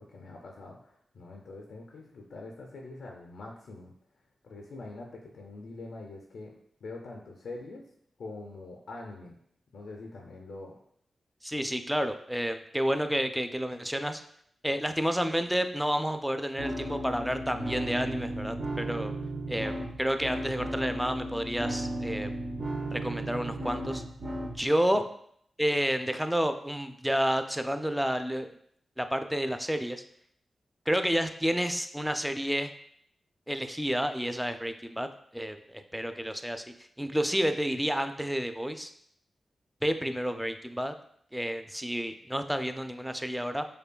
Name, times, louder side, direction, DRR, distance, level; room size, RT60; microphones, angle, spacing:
voice 1, 0.0-3.9 4.4-6.5 6.8-7.8 8.2-9.4 9.7-10.8 19.4-19.5 24.9-25.0, left 2 dB, 80° left, 0 dB, 0.4 m, -44 dB
voice 2, 11.4-14.2 14.6-19.1 19.5-22.3 22.9-24.0 24.5-25.0 25.6-28.5 29.0-30.0 30.9-32.7 33.5-35.1 35.3-36.6 37.0-38.9 39.8-40.9 41.3-43.7, equal, 5° right, 8 dB, 0.4 m, -30 dB
sound 1, 16.6-24.6, right 1 dB, 55° right, 0.6 m, -35 dB
5.2 x 2.2 x 2.2 m, 0.67 s
cardioid pair, 45°, 0 cm